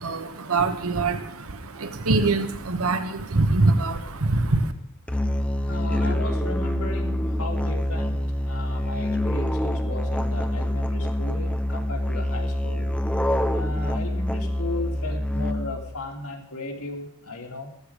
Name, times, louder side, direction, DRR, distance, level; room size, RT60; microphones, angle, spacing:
voice 1, 0.0-4.7, right 3 dB, 75° right, 9 dB, 1.2 m, -24 dB
Musical instrument, 5.1-15.9, left 1 dB, 5° left, 0.9 m, -26 dB
voice 2, 5.6-12.9 13.5-17.7, left 2 dB, 85° left, 1 dB, 3.3 m, -35 dB
15.5 x 13.0 x 5.1 m, 0.74 s
head